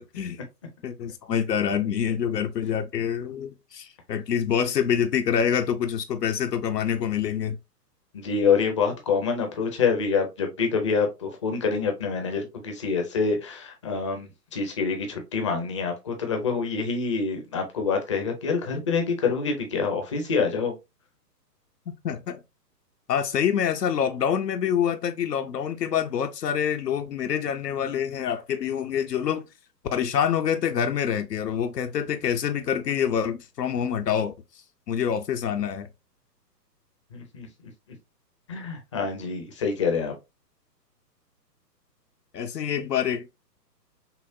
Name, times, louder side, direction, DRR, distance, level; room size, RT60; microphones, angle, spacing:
voice 1, 0.8-7.6 21.9-22.4 23.1-29.4 29.9-34.3 34.9-35.9 42.3-43.3, left 8 dB, 75° left, 0.7 m, -26 dB
voice 2, 8.1-20.7 37.1-37.5 38.5-40.1, left 5 dB, 20° left, 0.5 m, -26 dB
5.5 x 2.0 x 2.6 m
figure-of-eight pair, 125°, 50 cm